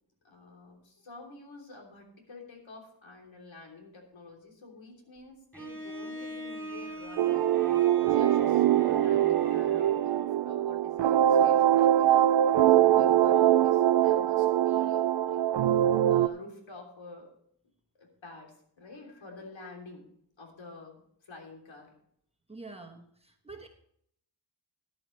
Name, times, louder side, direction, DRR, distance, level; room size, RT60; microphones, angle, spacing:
voice 1, 0.2-7.5 8.0-12.3 12.7-15.4 16.1-17.3 18.0-20.1 20.4-21.9, left 3 dB, 80° left, 1 dB, 3.4 m, -49 dB
Bowed string instrument, 5.5-10.4, right 1 dB, 5° left, 3.0 m, -43 dB
sweet chords, 7.2-16.3, right 11 dB, 70° right, 0.5 m, -23 dB
voice 2, 22.5-23.7, right 3 dB, 15° right, 2 dB, 1.2 m, -46 dB
14.0 x 11.0 x 3.2 m, 0.68 s
wide cardioid pair, 180°, 45 cm